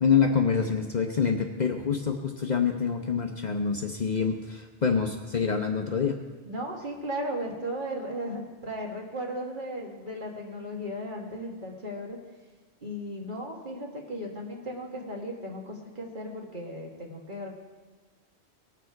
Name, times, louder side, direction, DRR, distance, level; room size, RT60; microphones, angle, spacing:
voice 1, 0.0-6.2, left 6 dB, 45° left, 3 dB, 0.8 m, -26 dB
voice 2, 6.5-12.2 12.8-17.5, equal, 45° right, 0 dB, 1.8 m, -36 dB
19.0 x 6.7 x 4.7 m, 1.5 s
omnidirectional pair, 1.2 m